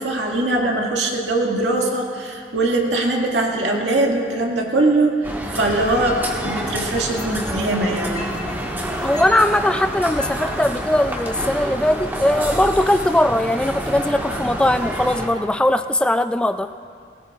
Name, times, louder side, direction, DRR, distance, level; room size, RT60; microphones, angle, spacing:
voice 1, 0.0-8.4, right 2 dB, 80° right, -1 dB, 2.0 m, -21 dB
sound 1, 5.2-15.3, equal, 10° right, 1.5 m, -28 dB
sound 2, 6.2-7.8 8.1-10.5 11.2-11.3, left 2 dB, 40° left, 2.3 m, -36 dB
voice 2, 9.0-16.7, left 1 dB, 5° left, 9 dB, 0.3 m, -19 dB
20.0 x 18.0 x 2.4 m, 2.2 s
head